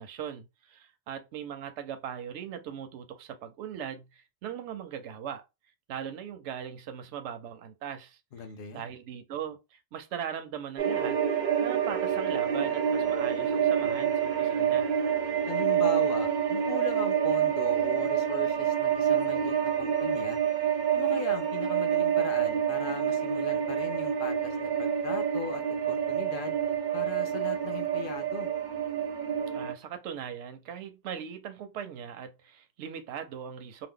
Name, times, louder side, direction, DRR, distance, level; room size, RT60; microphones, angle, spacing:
voice 1, 0.0-5.4 5.9-8.2 8.7-11.2 11.6-14.9 29.5-33.9, right 8 dB, 85° right, 0.9 m, -39 dB
voice 2, 8.3-8.9 15.5-20.4 20.9-26.6 26.9-28.5, left 6 dB, 60° left, 0.7 m, -39 dB
sound 1, 10.8-29.7, right 9 dB, 55° right, 0.6 m, -27 dB
2.8 x 2.1 x 3.6 m
omnidirectional pair, 1.1 m